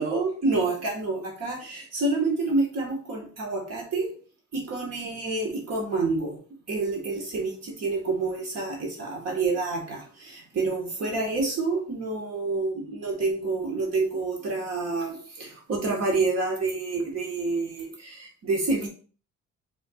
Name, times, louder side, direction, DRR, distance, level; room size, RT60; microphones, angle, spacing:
voice 1, 0.0-4.1 4.5-6.4 6.7-18.9, right 3 dB, 55° right, 0 dB, 1.4 m, -28 dB
4.5 x 4.3 x 2.3 m, 0.40 s
cardioid pair, 90°, 30 cm